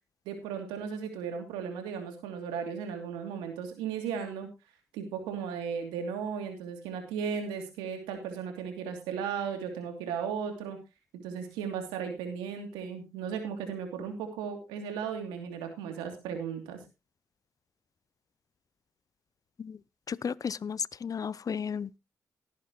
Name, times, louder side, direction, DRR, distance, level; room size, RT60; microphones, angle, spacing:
voice 1, 0.2-4.5 4.9-10.8 11.1-16.8, right 7 dB, 90° right, 2.8 m, -36 dB
voice 2, 20.1-21.9, left 6 dB, 50° left, 0.5 m, -34 dB
18.0 x 9.4 x 3.0 m
hypercardioid pair, 45°, 8 cm